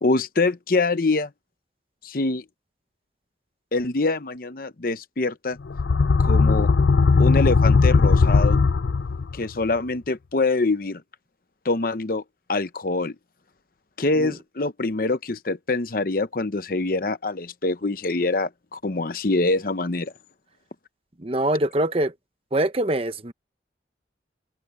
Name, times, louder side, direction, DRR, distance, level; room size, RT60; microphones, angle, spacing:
voice 1, 0.0-1.3 2.0-2.4 3.7-5.6 6.2-6.7 7.2-8.6 9.3-11.0 11.6-12.2 12.5-13.2 14.0-20.1, left 3 dB, 50° left, 0.8 m, -24 dB
sound 1, 5.6-9.4, left 4 dB, 80° left, 0.5 m, -18 dB
voice 2, 21.2-22.1 22.5-23.3, right 1 dB, 30° right, 1.0 m, -24 dB
head